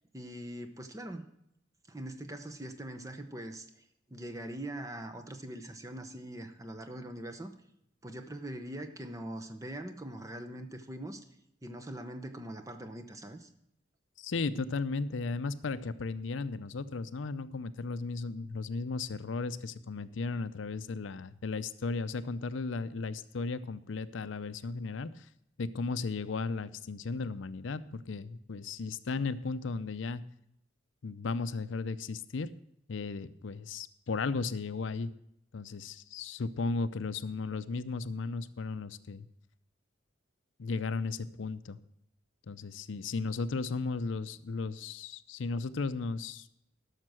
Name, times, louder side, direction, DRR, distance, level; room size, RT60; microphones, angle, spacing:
voice 1, 0.1-1.3 1.9-3.7 4.1-7.5 8.0-11.2 11.6-13.5, right 1 dB, 15° right, 7 dB, 0.8 m, -42 dB
voice 2, 14.2-25.3 25.6-30.2 31.0-32.5 32.9-35.1 35.5-39.3 40.6-41.8 42.5-46.5, left 4 dB, 80° left, 14 dB, 0.5 m, -35 dB
12.0 x 6.6 x 6.2 m, 0.76 s
head